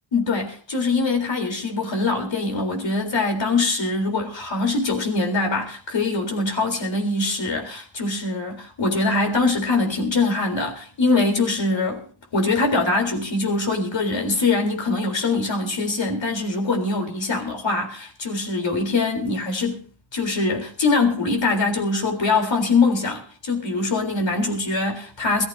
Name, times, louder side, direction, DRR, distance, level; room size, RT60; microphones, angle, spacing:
voice 1, 0.1-19.8 20.1-25.4, left 3 dB, 65° left, 3.9 m, -23 dB
22.5 x 14.0 x 2.8 m
wide cardioid pair, 110°, 47 cm